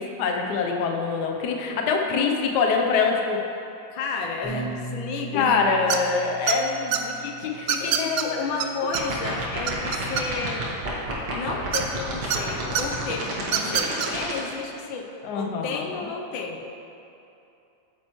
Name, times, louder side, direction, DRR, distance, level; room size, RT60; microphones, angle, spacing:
voice 1, 0.0-3.4 4.5-4.6 5.3-8.4 15.2-16.1, left 5 dB, 65° left, 2 dB, 1.2 m, -25 dB
voice 2, 3.9-5.6 7.7-10.7 11.3-15.1 15.3-16.6, left 4 dB, 85° left, 2 dB, 1.5 m, -32 dB
Bass guitar, 4.4-10.7, right 4 dB, 5° right, 1.2 m, -40 dB
sound 1, 5.9-6.2 6.5-7.0 7.7-8.2 8.6-8.7 8.9-9.0 9.4-10.5 11.7-12.4 12.7-12.8 13.4-14.1, right 9 dB, 85° right, 0.8 m, -24 dB
sound 2, 8.8-14.4, right 2 dB, 65° right, 1.9 m, -29 dB
8.9 x 8.7 x 3.0 m, 2.8 s
omnidirectional pair, 2.1 m